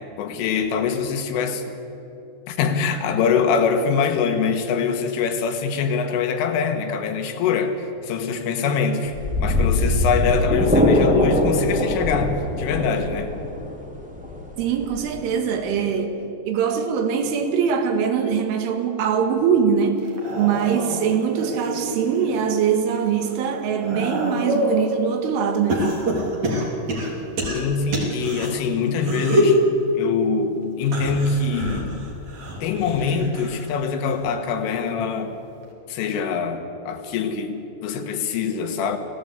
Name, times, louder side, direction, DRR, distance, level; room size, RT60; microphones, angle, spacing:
voice 1, 0.0-1.7 2.5-9.1 9.4-13.3 27.5-29.6 30.0-32.1 32.6-35.4 35.9-39.0, left 5 dB, 85° left, 4.1 m, -24 dB
sound 1, 9.1-15.9, left 1 dB, 5° right, 1.6 m, -22 dB
voice 2, 14.6-25.9, right 7 dB, 80° right, 4.2 m, -22 dB
sound 2, 20.0-22.4 22.9-24.8 25.7-28.5 29.0-29.6 30.8-33.7 34.0-34.5 35.6-35.7, equal, 40° right, 3.7 m, -26 dB
27.0 x 17.0 x 8.2 m
omnidirectional pair, 5.6 m